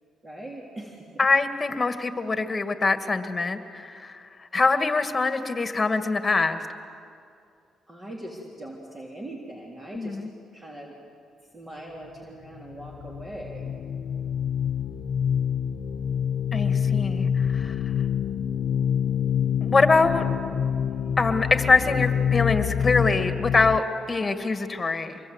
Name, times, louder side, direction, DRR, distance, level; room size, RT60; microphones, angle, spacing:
voice 1, 0.2-1.3 7.9-10.2 10.5-10.9 11.4-13.8, right 1 dB, 30° right, -2 dB, 3.5 m, -41 dB
voice 2, 1.2-4.3 4.5-6.6 10.0-10.3 16.5-17.8 19.6-20.2 21.2-25.2, left 3 dB, 25° left, 7 dB, 1.9 m, -24 dB
sound 1, 12.5-23.8, left 8 dB, 70° left, 0.5 m, -26 dB
25.5 x 22.5 x 8.1 m, 2.5 s
cardioid pair, 90°, 0 cm